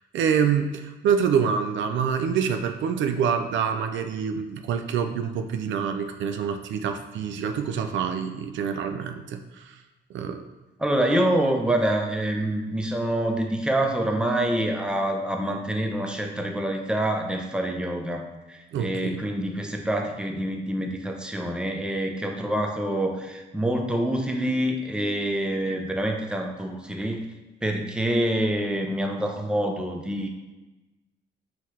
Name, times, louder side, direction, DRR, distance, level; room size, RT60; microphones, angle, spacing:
voice 1, 0.1-9.8 10.1-10.4 18.7-19.2, right 7 dB, 75° right, 7 dB, 0.4 m, -26 dB
voice 2, 10.8-27.2 27.6-30.3, right 1 dB, 5° right, 3 dB, 0.5 m, -26 dB
5.6 x 3.0 x 3.1 m, 1.1 s
cardioid pair, 90°, 20 cm